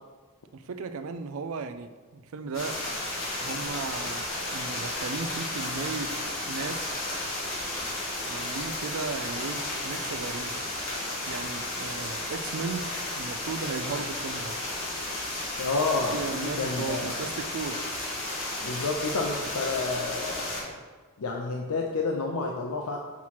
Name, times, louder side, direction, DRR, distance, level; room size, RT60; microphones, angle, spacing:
voice 1, 0.5-2.8 3.4-6.2 6.5-7.0 8.1-10.6 11.3-14.6 16.1-17.9, right 4 dB, 65° right, 10 dB, 0.4 m, -36 dB
sound 1, 2.5-20.6, left 1 dB, 60° left, 1.8 m, -33 dB
voice 2, 15.6-17.1 18.6-20.8 21.2-23.0, left 3 dB, 80° left, 0 dB, 0.5 m, -30 dB
5.9 x 3.1 x 5.6 m, 1.4 s
head